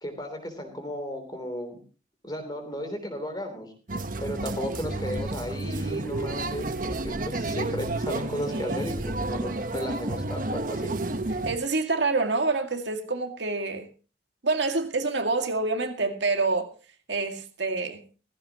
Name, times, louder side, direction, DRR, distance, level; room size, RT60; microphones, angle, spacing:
voice 1, 0.0-1.8 2.2-3.7 4.2-11.0, equal, 20° left, 3.3 m, -34 dB
sound 1, 3.9-11.6, right 2 dB, 50° right, 1.1 m, -31 dB
voice 2, 8.5-8.8 11.5-13.9 14.4-16.7 17.1-18.0, right 3 dB, 80° right, 2.1 m, -27 dB
16.0 x 15.5 x 3.0 m
head